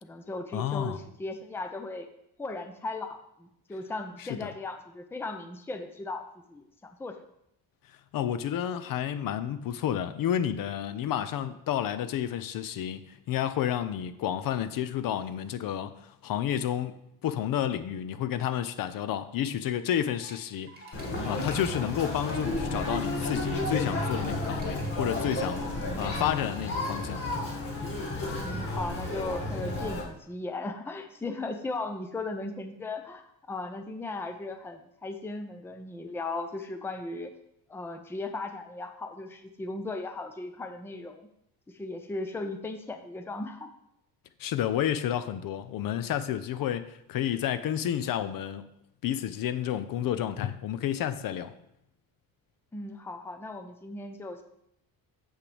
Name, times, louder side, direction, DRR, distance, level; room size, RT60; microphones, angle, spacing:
voice 1, 0.0-2.1 2.4-7.2 25.8-26.2 28.4-37.3 37.7-41.3 41.7-43.7 52.7-54.4, left 2 dB, 5° left, 7 dB, 0.5 m, -37 dB
voice 2, 0.5-1.0 4.2-4.5 8.1-20.7 21.3-27.2 44.4-48.7 49.0-51.5, left 10 dB, 60° left, 12 dB, 0.6 m, -30 dB
sound 1, 20.1-27.3, right 2 dB, 25° right, 2.3 m, -51 dB
Conversation, 20.9-30.0, left 2 dB, 35° left, 1.8 m, -32 dB
8.5 x 7.5 x 3.4 m, 0.79 s
cardioid pair, 150°, 38 cm